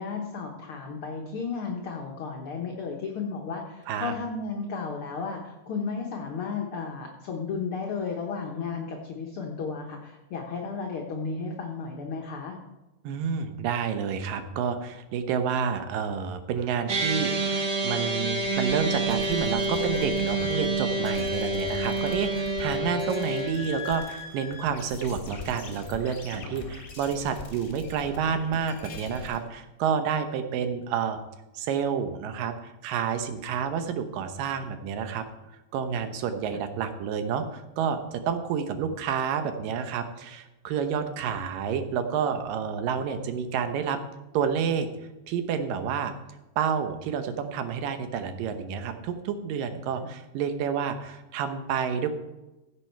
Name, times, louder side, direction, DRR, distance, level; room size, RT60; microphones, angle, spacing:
voice 1, 0.0-12.6 50.0-50.1, left 5 dB, 60° left, 1 dB, 1.5 m, -34 dB
voice 2, 13.0-31.2 31.5-35.3 35.7-44.0 44.3-44.9 45.3-46.1 46.6-52.1, right 7 dB, 85° right, 8 dB, 2.6 m, -29 dB
sound 1, 16.9-23.5, right 2 dB, 40° right, 1.8 m, -28 dB
sound 2, 18.3-29.4, left 5 dB, 35° left, 1.4 m, -42 dB
16.0 x 8.0 x 4.5 m, 1.0 s
omnidirectional pair, 3.9 m